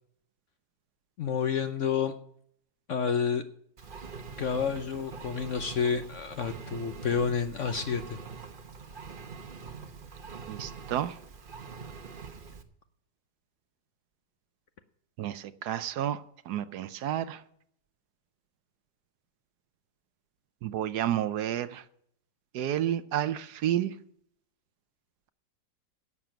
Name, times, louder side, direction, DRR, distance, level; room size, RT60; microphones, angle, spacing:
voice 1, 1.2-2.1 2.9-3.4 4.4-8.2, left 7 dB, 60° left, 9 dB, 0.8 m, -29 dB
Engine, 3.8-12.6, right 5 dB, 40° right, 0.9 m, -44 dB
voice 2, 10.5-11.2 15.2-17.4 20.6-21.8 22.5-23.9, right 11 dB, 70° right, 14 dB, 1.1 m, -31 dB
11.0 x 7.5 x 8.9 m, 0.68 s
omnidirectional pair, 1.9 m